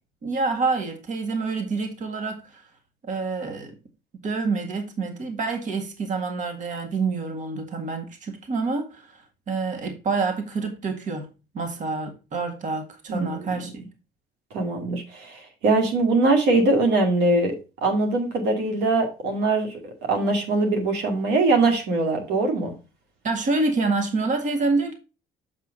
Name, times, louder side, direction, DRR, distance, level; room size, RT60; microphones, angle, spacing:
voice 1, 0.2-2.6 3.0-3.8 4.2-11.3 11.5-13.9 23.2-24.9, right 3 dB, 50° right, 1.9 m, -27 dB
voice 2, 13.1-13.6 14.5-17.5 17.8-22.7, right 2 dB, 85° right, 2.2 m, -22 dB
7.3 x 6.0 x 3.8 m
cardioid pair, 110°, 17 cm